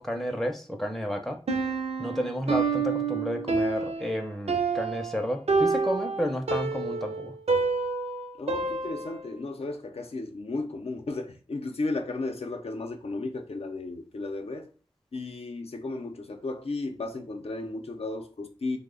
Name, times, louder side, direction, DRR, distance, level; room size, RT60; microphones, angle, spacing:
voice 1, 0.0-1.4 2.0-7.3, equal, 5° left, 0.5 m, -31 dB
Piano, 1.5-9.3, right 4 dB, 80° right, 0.5 m, -28 dB
voice 2, 8.4-14.7 15.1-18.8, left 2 dB, 75° left, 0.5 m, -34 dB
3.1 x 2.1 x 3.7 m
wide cardioid pair, 45°, 10 cm